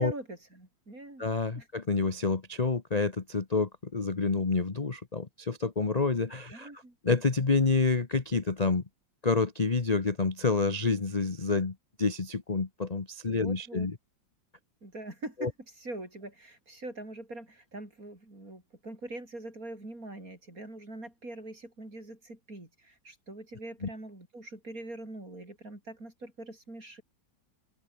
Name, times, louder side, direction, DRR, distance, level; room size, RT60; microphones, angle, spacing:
voice 1, 0.0-1.3 1.6-1.7 6.5-7.0 13.3-13.9 14.8-27.0, right 2 dB, 45° right, 7.5 m, -43 dB
voice 2, 1.2-6.7 7.0-8.8 9.2-13.9 15.4-15.5 23.8-23.9, left 4 dB, 25° left, 1.1 m, -28 dB
open air
omnidirectional pair, 2.0 m